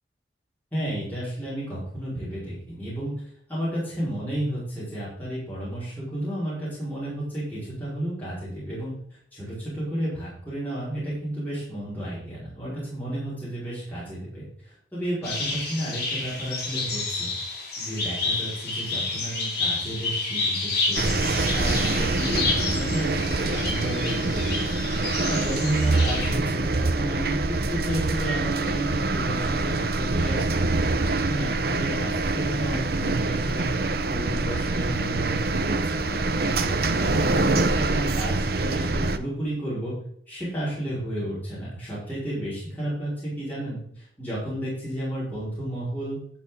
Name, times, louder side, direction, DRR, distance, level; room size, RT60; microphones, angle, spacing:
voice 1, 0.7-3.1 3.5-8.9 9.3-17.3 17.8-21.1 21.5-24.8 25.3-30.7 31.1-33.7 34.0-39.9 40.3-46.2, right 1 dB, 10° left, -10 dB, 4.9 m, -32 dB
sound 1, 15.2-26.4, left 3 dB, 55° left, 5.3 m, -30 dB
sound 2, 21.0-39.2, right 2 dB, 55° right, 0.7 m, -25 dB
10.5 x 8.7 x 3.8 m, 0.65 s
head